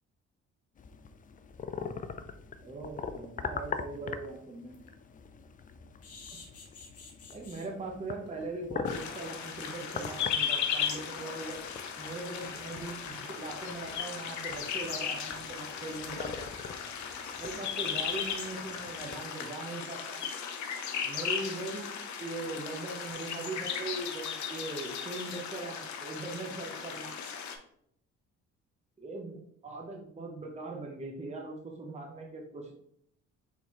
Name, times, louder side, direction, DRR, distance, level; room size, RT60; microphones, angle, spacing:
sound 1, 0.8-19.2, left 5 dB, 30° left, 0.4 m, -43 dB
voice 1, 2.6-4.8 7.3-11.6 12.0-16.5 17.4-20.2 21.0-21.9 22.2-27.1 29.0-32.7, right 3 dB, 20° right, 0 dB, 0.8 m, -40 dB
sound 2, 3.7-3.8 4.2-4.3 4.7-4.9 6.0-7.7 8.3-8.4 8.7-8.8 9.2-9.3, left 4 dB, 50° left, 1.2 m, -50 dB
sound 3, 8.9-27.6, left 7 dB, 70° left, 0.7 m, -36 dB
4.3 x 3.9 x 3.0 m, 0.70 s
cardioid pair, 90°, 30 cm